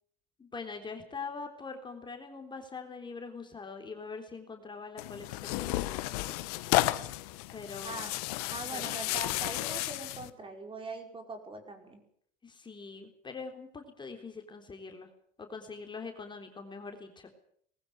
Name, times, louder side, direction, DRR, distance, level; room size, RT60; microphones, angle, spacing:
voice 1, 0.4-6.2 7.5-8.1 8.7-8.9 12.4-15.1 15.4-17.3, left 4 dB, 25° left, 4 dB, 3.7 m, -43 dB
Tearing, 5.0-10.3, left 18 dB, 80° left, 1.3 m, -32 dB
voice 2, 7.8-8.2 8.5-12.0, right 2 dB, 25° right, 5 dB, 5.2 m, -42 dB
20.0 x 15.5 x 9.2 m, 0.64 s
supercardioid pair, 95°, 19 cm